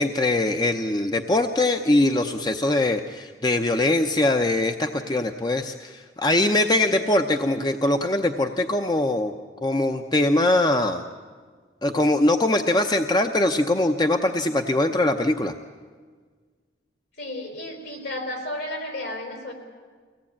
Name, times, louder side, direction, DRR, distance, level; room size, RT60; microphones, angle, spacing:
voice 1, 0.0-9.3 9.6-11.0 11.8-15.5, left 2 dB, 25° left, 6 dB, 0.7 m, -22 dB
voice 2, 17.2-19.5, left 1 dB, 70° left, 3 dB, 4.3 m, -33 dB
24.0 x 17.5 x 8.7 m, 1.6 s
head